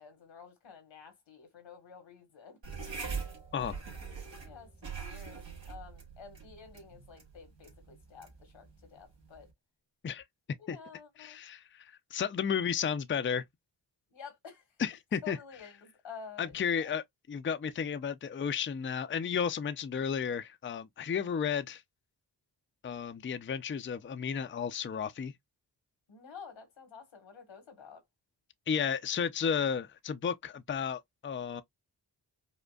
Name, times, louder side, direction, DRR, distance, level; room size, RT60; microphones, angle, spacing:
voice 1, 0.0-2.6 4.4-9.5 10.6-11.4 14.1-14.7 15.2-16.9 26.1-28.0, left 6 dB, 85° left, 1.5 m, -50 dB
sound 1, 2.6-9.5, right 5 dB, 70° right, 1.6 m, -43 dB
voice 2, 11.2-13.4 14.8-15.4 16.4-21.8 22.8-25.3 28.7-31.6, left 7 dB, 25° left, 0.4 m, -33 dB
5.0 x 2.2 x 2.3 m
cardioid pair, 40°, 45 cm